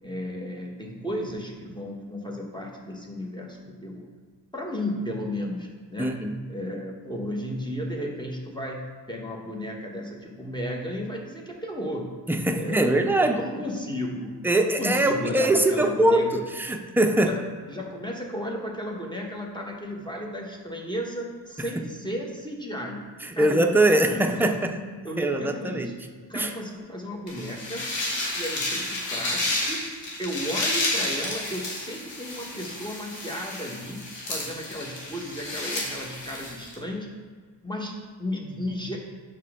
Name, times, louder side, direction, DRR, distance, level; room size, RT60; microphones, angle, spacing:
voice 1, 0.0-4.1 4.5-6.2 6.5-12.2 12.5-12.8 13.1-16.3 17.2-17.4 17.7-23.0 23.3-24.3 25.0-27.9 28.3-29.8 30.2-34.0 34.3-37.1 37.6-39.0, equal, 10° left, -1 dB, 1.2 m, -34 dB
voice 2, 6.0-6.3 12.3-13.4 14.4-17.3 23.2-24.8 25.2-25.9 26.3-26.5, right 1 dB, 5° right, 4 dB, 0.5 m, -22 dB
sound 1, 27.3-36.7, left 2 dB, 80° left, 1.4 m, -31 dB
6.1 x 4.4 x 3.7 m, 1.6 s
cardioid pair, 55°, 43 cm